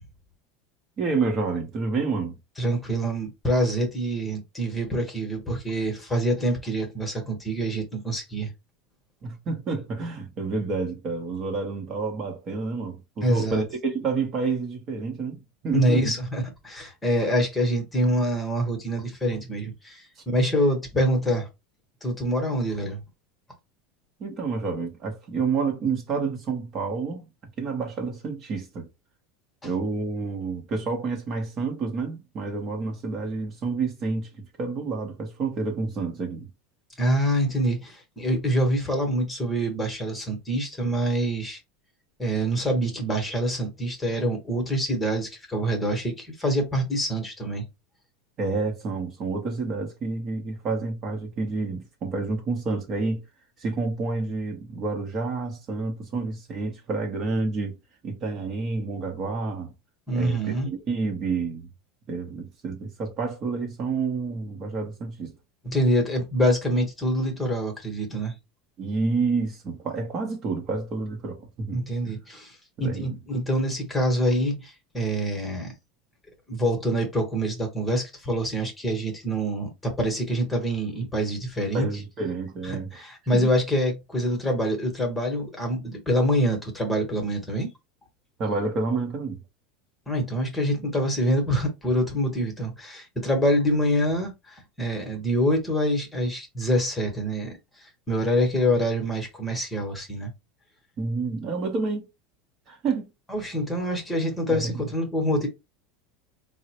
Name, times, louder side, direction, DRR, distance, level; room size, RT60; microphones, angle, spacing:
voice 1, 1.0-2.4 9.2-16.1 20.2-20.3 24.2-28.9 29.6-36.5 48.4-53.2 53.6-57.7 58.0-59.7 60.1-61.7 62.1-65.3 68.8-71.8 72.0-72.1 72.8-73.2 81.7-83.0 83.3-83.5 88.4-89.4 101.0-102.1 102.7-103.1 104.5-104.8, right 4 dB, 35° right, 0.8 m, -29 dB
voice 2, 2.6-8.5 13.2-13.6 15.7-21.5 22.0-23.0 29.6-29.7 37.0-41.6 42.2-47.6 60.1-60.7 65.6-68.3 71.7-75.7 76.5-81.9 82.7-87.7 90.1-100.3 103.3-105.5, equal, 10° left, 1.1 m, -26 dB
3.8 x 2.1 x 2.8 m
supercardioid pair, 135°, 0 cm